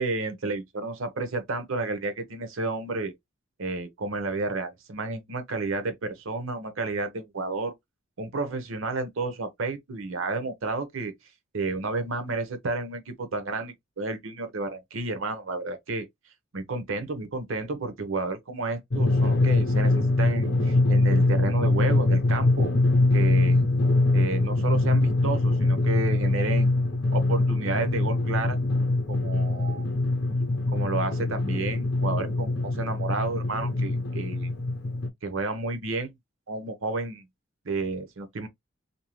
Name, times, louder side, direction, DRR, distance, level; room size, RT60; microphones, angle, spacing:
voice 1, 0.0-3.1 3.6-7.7 8.2-11.1 11.5-16.1 16.5-22.7 23.1-23.6 24.1-26.8 27.1-28.6 29.1-29.9 30.7-34.5 35.2-36.1 36.5-37.2 37.6-38.5, right 3 dB, 70° right, 0.7 m, -31 dB
Drum, 18.9-35.1, left 2 dB, 50° left, 0.6 m, -23 dB
2.6 x 2.0 x 3.0 m
head